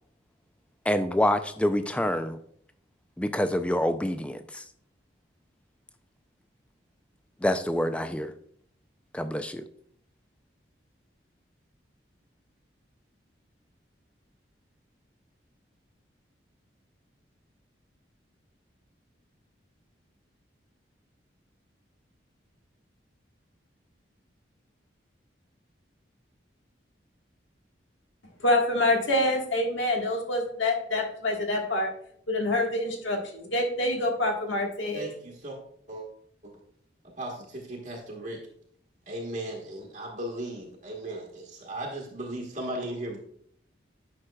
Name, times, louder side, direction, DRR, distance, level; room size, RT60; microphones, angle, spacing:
voice 1, 0.9-2.4 3.2-4.6 7.4-8.3 9.1-9.6, left 1 dB, 5° left, 9 dB, 0.3 m, -26 dB
voice 2, 28.4-31.9 32.3-35.0, left 1 dB, 85° left, 1 dB, 1.5 m, -26 dB
voice 3, 34.9-35.6 35.9-36.0 36.4-36.5 37.2-38.4 39.1-43.2, right 1 dB, 45° right, -3 dB, 1.1 m, -36 dB
9.6 x 5.9 x 2.3 m, 0.66 s
head